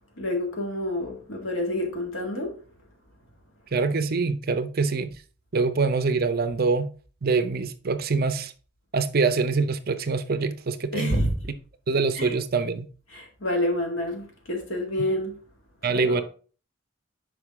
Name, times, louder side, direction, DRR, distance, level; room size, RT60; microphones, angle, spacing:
voice 1, 0.2-2.6 10.9-11.4 12.1-12.4 13.1-15.4 15.9-16.2, left 1 dB, 85° left, 2.0 m, -28 dB
voice 2, 3.7-5.1 5.5-6.9 7.2-8.5 8.9-11.2 11.9-12.9 15.8-16.2, right 4 dB, 50° right, 0.6 m, -24 dB
6.4 x 5.1 x 3.6 m
head